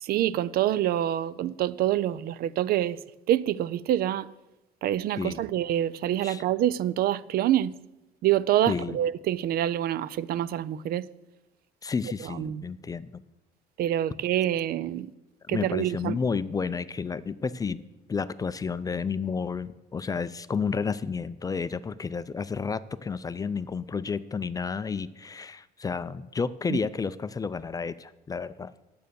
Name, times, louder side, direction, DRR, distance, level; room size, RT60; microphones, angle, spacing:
voice 1, 0.0-3.0 3.3-4.3 4.8-7.7 8.2-11.1 12.4-12.6 13.8-15.1 15.5-16.2 26.7-26.8, right 12 dB, 65° right, 0.4 m, -26 dB
voice 2, 8.7-9.0 11.8-13.2 15.5-17.8 18.1-28.7, left 5 dB, 20° left, 0.4 m, -31 dB
9.0 x 7.7 x 6.9 m
cardioid pair, 110°, 17 cm